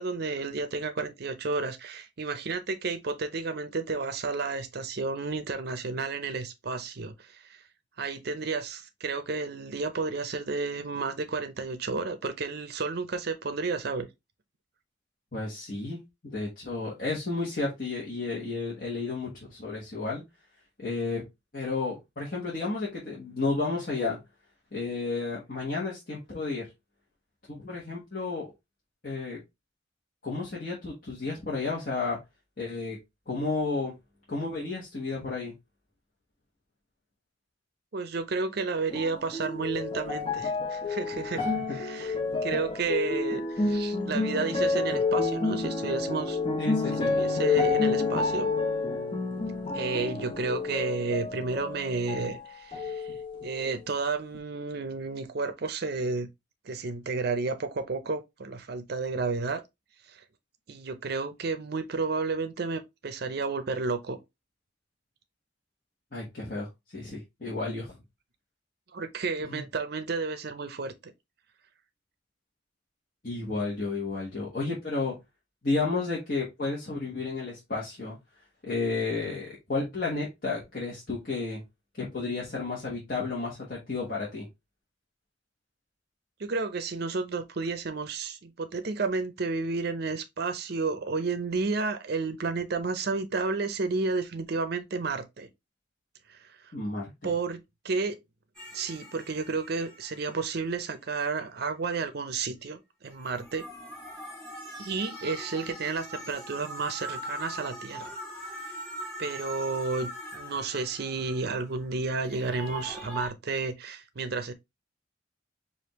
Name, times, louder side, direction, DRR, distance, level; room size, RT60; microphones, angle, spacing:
voice 1, 0.0-7.6 8.0-14.1 37.9-46.4 46.9-48.5 49.7-53.1 53.4-56.3 56.6-59.6 60.1-60.2 60.7-64.2 68.9-71.1 86.4-95.5 96.3-96.5 97.2-98.2 98.7-103.7 104.8-108.1 108.5-108.7 109.2-114.5, right 4 dB, 55° right, 0.6 m, -32 dB
voice 2, 15.3-20.2 20.8-21.2 21.5-24.2 24.7-26.7 27.5-28.5 29.0-29.4 30.2-32.2 32.6-33.0 33.3-33.9 34.3-35.5 41.3-41.8 46.6-47.1 66.1-67.9 69.5-69.6 73.2-75.2 75.6-78.2 78.6-81.6 82.0-84.5 96.7-97.1, left 3 dB, 50° left, 1.2 m, -32 dB
sound 1, 38.9-52.4 52.7-53.7 54.3-54.4, left 3 dB, 30° left, 0.7 m, -29 dB
sound 2, 98.5-100.8 103.0-111.8 112.2-113.3, equal, 5° left, 1.9 m, -41 dB
5.0 x 2.5 x 3.0 m
head